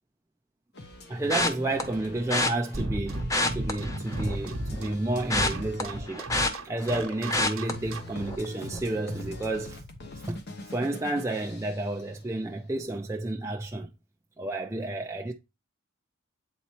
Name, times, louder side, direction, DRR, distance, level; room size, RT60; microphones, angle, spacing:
sound 1, 0.7-12.7, left 2 dB, 50° left, 1.1 m, -45 dB
voice 1, 1.1-6.3 6.6-9.8 10.2-13.9 14.4-15.3, right 2 dB, 15° right, 0.4 m, -31 dB
sound 2, 1.3-1.8 2.3-2.5 3.2-4.4 4.8-7.0 7.3-7.7 8.2-8.4 8.7-8.8, left 2 dB, 15° left, 0.7 m, -27 dB
sound 3, 2.7-8.3, right 1 dB, 80° right, 1.0 m, -34 dB
8.3 x 4.1 x 3.0 m
head